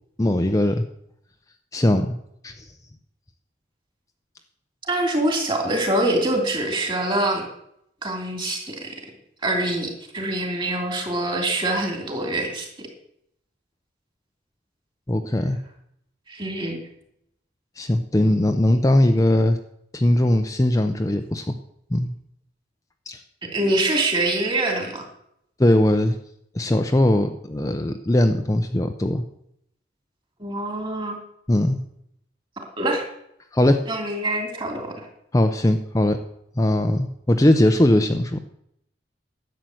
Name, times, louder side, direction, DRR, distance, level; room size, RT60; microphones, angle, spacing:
voice 1, 0.2-0.9 1.7-2.2 2.4-2.7 15.1-15.6 17.8-19.6 19.9-21.5 21.9-22.1 23.1-23.2 25.6-26.2 26.5-29.2 31.5-31.8 33.5-33.8 35.3-36.2 36.6-38.4, left 1 dB, 20° left, 6 dB, 0.6 m, -20 dB
voice 2, 4.9-7.4 8.0-8.9 9.4-12.7 16.3-16.8 23.5-25.0 30.4-31.2 32.8-33.1 33.9-35.1, right 1 dB, 25° right, 3 dB, 2.9 m, -24 dB
11.5 x 7.8 x 7.7 m, 0.75 s
head